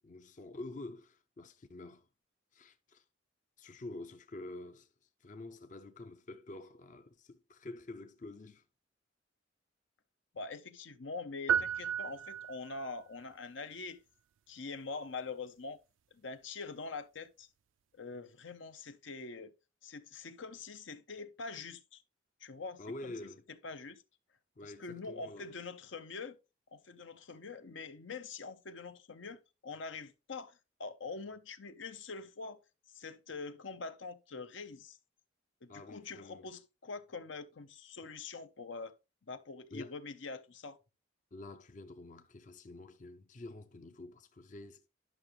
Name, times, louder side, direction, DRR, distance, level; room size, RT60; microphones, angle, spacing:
voice 1, 0.0-2.1 2.5-3.0 3.6-8.6 22.8-23.5 24.6-25.5 35.7-36.5 39.7-39.9 41.3-44.9, left 2 dB, 40° left, 0.5 m, -48 dB
voice 2, 10.3-14.0 14.5-15.8 16.1-17.5 17.9-19.5 19.8-22.0 22.4-23.1 23.6-24.0 24.6-26.4 26.7-32.6 32.9-35.0 35.6-38.9 39.3-40.8, left 4 dB, 80° left, 0.8 m, -44 dB
sound 1, 11.5-12.9, right 8 dB, 85° right, 0.4 m, -33 dB
11.0 x 5.9 x 3.1 m
head